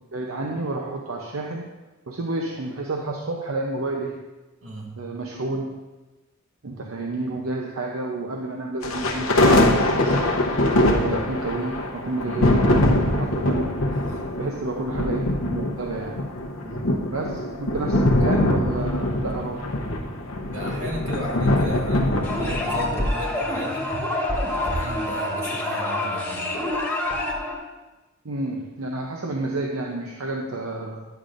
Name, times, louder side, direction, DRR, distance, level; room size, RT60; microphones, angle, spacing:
voice 1, 0.1-1.7 2.1-4.2 5.0-5.8 6.6-9.4 9.7-10.2 10.8-13.6 14.4-16.2 17.1-19.6 28.2-31.1, right 2 dB, 90° right, 0 dB, 0.7 m, -30 dB
voice 2, 4.6-4.9 12.2-12.5 14.1-14.2 16.6-16.9 20.5-23.9 24.5-26.5, equal, 70° right, -3 dB, 1.9 m, -35 dB
sound 1, 8.8-23.1, left 1 dB, 90° left, 0.8 m, -23 dB
sound 2, 22.2-27.6, left 1 dB, 10° left, 1.2 m, -27 dB
10.0 x 6.6 x 2.5 m, 1.1 s
head